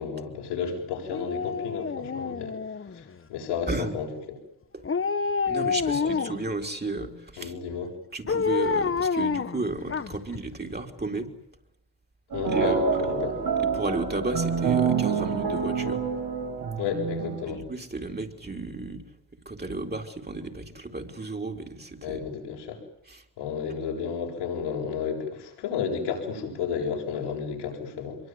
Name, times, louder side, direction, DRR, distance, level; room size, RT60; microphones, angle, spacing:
voice 1, 0.0-2.5 2.9-3.0 3.3-4.4 6.0-6.1 7.4-7.9 12.3-13.4 16.8-17.6 22.0-22.8 23.4-28.2, left 6 dB, 85° left, 0 dB, 7.5 m, -32 dB
Dog, 1.1-3.1 4.8-6.5 8.3-10.4 10.7-10.8, left 5 dB, 30° left, 1.4 m, -28 dB
voice 2, 3.7-4.0 4.7-4.8 5.5-7.5 8.1-11.3 12.5-12.8 13.6-16.0 17.5-19.0 19.5-22.3 23.1-23.2, right 2 dB, 25° right, 3 dB, 4.2 m, -33 dB
sound 1, 12.3-17.4, right 6 dB, 60° right, 5.8 m, -27 dB
24.0 x 23.0 x 9.6 m, 0.78 s
supercardioid pair, 60°, 41 cm